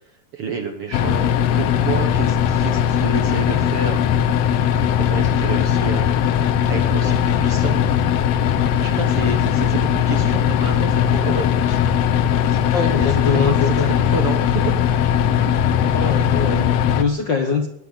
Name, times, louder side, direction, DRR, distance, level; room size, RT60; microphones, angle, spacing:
voice 1, 0.3-4.0 4.8-7.8 8.8-11.8 12.5-12.6 12.9-14.8, right 5 dB, 55° right, 5 dB, 1.8 m, -30 dB
sound 1, 0.9-17.0, left 9 dB, 80° left, 1.4 m, -19 dB
voice 2, 12.5-13.9 15.9-17.7, left 5 dB, 55° left, 3 dB, 1.3 m, -23 dB
20.5 x 8.0 x 8.1 m, 0.78 s
omnidirectional pair, 3.9 m